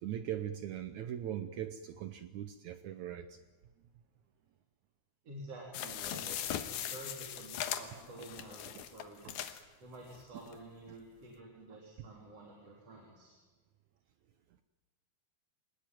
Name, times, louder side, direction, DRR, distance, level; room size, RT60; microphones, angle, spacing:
voice 1, 0.0-3.4 8.7-8.9 9.2-9.3, right 10 dB, 80° right, 9 dB, 1.7 m, -40 dB
voice 2, 5.2-9.4 9.8-13.4, right 2 dB, 40° right, -2 dB, 4.3 m, -50 dB
sound 1, 5.7-9.6 10.2-10.3 10.5-10.6, left 10 dB, 75° left, 3.0 m, -39 dB
26.0 x 19.0 x 9.3 m, 1.4 s
omnidirectional pair, 4.5 m